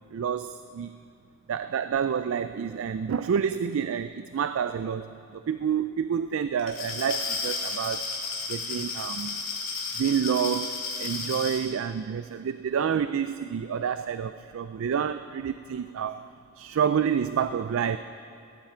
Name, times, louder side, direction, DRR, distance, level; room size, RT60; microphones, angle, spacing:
voice 1, 0.1-0.9 1.5-8.1 8.5-9.4 10.0-16.3 16.6-18.0, right 7 dB, 70° right, 12 dB, 0.3 m, -28 dB
Glass, 6.6-11.6, left 4 dB, 80° left, 2.6 m, -33 dB
17.5 x 13.0 x 4.5 m, 2.6 s
head